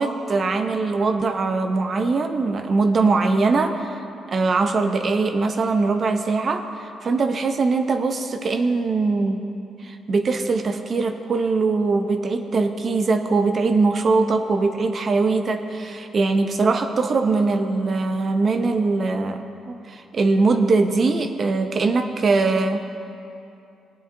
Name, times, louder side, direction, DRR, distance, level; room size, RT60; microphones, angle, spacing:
voice 1, 0.0-4.0 4.3-9.4 9.8-22.9, right 3 dB, 45° right, 7 dB, 0.6 m, -21 dB
18.0 x 8.8 x 2.6 m, 2.7 s
cardioid pair, 90°, 0 cm